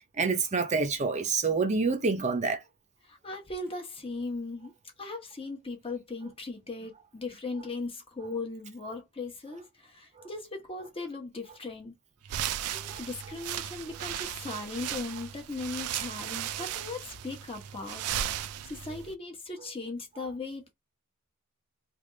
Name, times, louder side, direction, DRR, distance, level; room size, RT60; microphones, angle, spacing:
voice 1, 0.2-2.6, right 4 dB, 30° right, 0.6 m, -27 dB
voice 2, 3.1-4.7 5.0-9.6 9.9-11.9 12.7-18.0 18.7-20.7, left 3 dB, 25° left, 0.9 m, -38 dB
sound 1, 12.3-19.1, right 11 dB, 80° right, 0.4 m, -36 dB
3.3 x 2.4 x 3.8 m
head